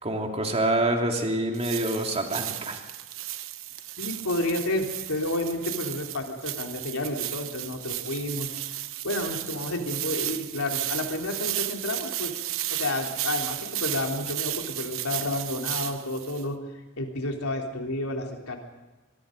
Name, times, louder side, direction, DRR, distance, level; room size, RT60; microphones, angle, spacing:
voice 1, 0.0-2.8, right 1 dB, 30° right, 2 dB, 2.9 m, -26 dB
sound 1, 1.5-16.4, right 14 dB, 65° right, 1.0 m, -34 dB
voice 2, 4.0-8.5 9.0-12.3 12.7-16.6 17.0-18.6, left 1 dB, 85° left, 2 dB, 3.4 m, -30 dB
25.5 x 22.5 x 5.3 m, 1.1 s
head